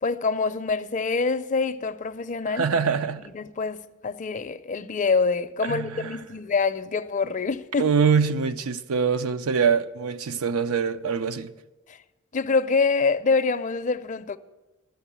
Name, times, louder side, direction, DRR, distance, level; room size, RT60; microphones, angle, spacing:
voice 1, 0.0-2.7 3.2-7.9 11.9-12.0 12.3-14.4, left 4 dB, 35° left, 0.4 m, -25 dB
voice 2, 2.5-3.3 5.7-6.1 7.8-11.5, right 6 dB, 85° right, 0.6 m, -24 dB
13.0 x 6.8 x 9.8 m
head